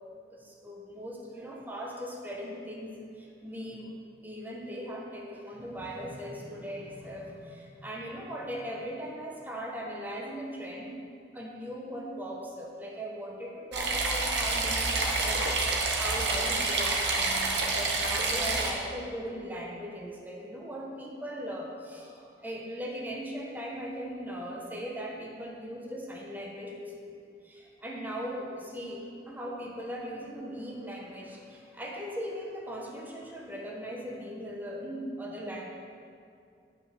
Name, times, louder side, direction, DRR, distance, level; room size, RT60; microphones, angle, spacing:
voice 1, 0.3-3.9 4.2-11.0 11.3-27.1 27.4-35.7, equal, 10° right, -2 dB, 1.2 m, -39 dB
sound 1, 13.7-18.7, right 3 dB, 70° right, 1.4 m, -28 dB
10.0 x 5.8 x 6.6 m, 2.4 s
head